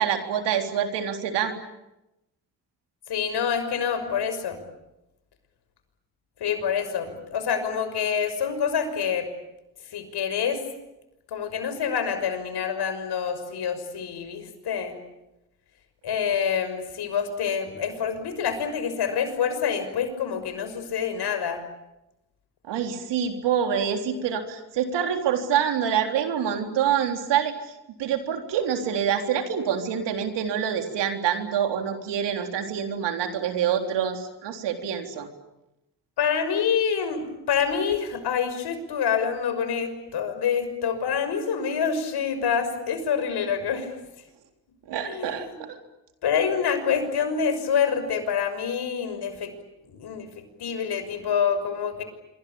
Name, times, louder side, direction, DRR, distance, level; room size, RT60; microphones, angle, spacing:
voice 1, 0.0-1.5 22.7-27.7 28.0-35.3 44.9-45.8, right 8 dB, 80° right, 5 dB, 3.8 m, -26 dB
voice 2, 3.1-4.6 6.4-9.3 9.9-10.6 11.3-14.9 16.0-21.6 36.2-43.9 45.0-45.6 46.2-49.5 49.8-52.0, left 7 dB, 70° left, 9 dB, 6.2 m, -27 dB
26.0 x 24.5 x 8.7 m, 0.93 s
supercardioid pair, 65°, 41 cm